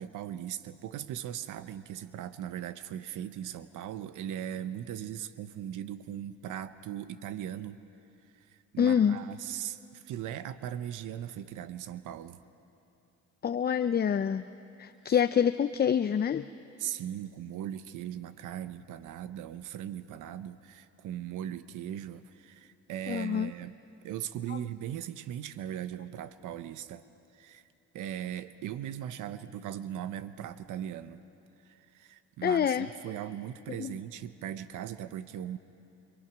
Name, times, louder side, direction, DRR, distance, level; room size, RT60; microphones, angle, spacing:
voice 1, 0.0-7.8 8.3-12.4 15.0-15.2 16.8-23.7 24.0-27.0 27.3-27.6 27.9-31.2 31.6-35.6, right 10 dB, 75° right, 13 dB, 0.9 m, -39 dB
voice 2, 8.8-9.2 13.4-14.5 14.8-16.4 23.1-23.5 24.5-24.6 32.4-32.9 33.8-33.9, left 8 dB, 30° left, 11 dB, 0.5 m, -26 dB
27.0 x 26.5 x 6.2 m, 2.7 s
supercardioid pair, 80°, 31 cm